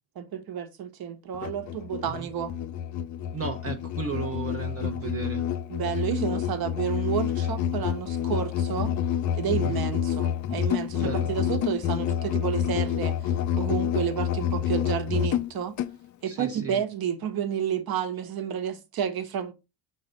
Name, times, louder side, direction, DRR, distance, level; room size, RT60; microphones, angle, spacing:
voice 1, 0.2-2.5 5.7-8.9 9.4-13.2 13.6-15.8 16.2-19.5, right 8 dB, 50° right, 1.2 m, -30 dB
Musical instrument, 1.3-16.0, left 9 dB, 40° left, 0.6 m, -28 dB
voice 2, 3.3-5.5 9.5-9.8 11.0-11.3 16.3-16.8, right 6 dB, 30° right, 0.8 m, -35 dB
6.3 x 4.1 x 4.3 m
cardioid pair, 125°, 48 cm